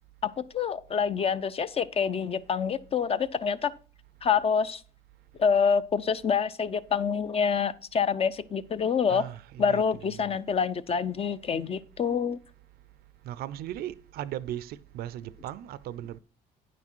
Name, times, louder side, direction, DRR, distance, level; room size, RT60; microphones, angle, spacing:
voice 1, 0.2-3.7 4.2-4.8 5.4-9.3 9.6-12.4, left 6 dB, 35° left, 0.5 m, -27 dB
voice 2, 9.1-10.4 13.2-16.2, right 12 dB, 65° right, 0.5 m, -38 dB
9.3 x 6.0 x 4.4 m
cardioid pair, 110°, 17 cm